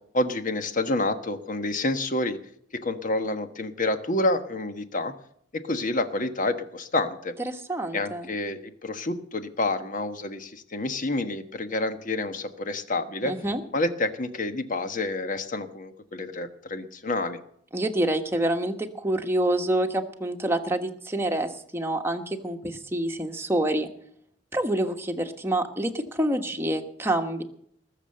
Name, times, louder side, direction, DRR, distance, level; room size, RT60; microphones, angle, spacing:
voice 1, 0.1-2.4 2.8-5.1 5.5-7.3 7.9-13.3 13.7-17.4, left 2 dB, 45° left, 9 dB, 1.3 m, -28 dB
voice 2, 7.4-8.3 13.2-13.6 17.7-23.9 24.5-27.4, right 1 dB, 15° right, 4 dB, 1.3 m, -27 dB
20.0 x 7.0 x 7.8 m, 0.67 s
head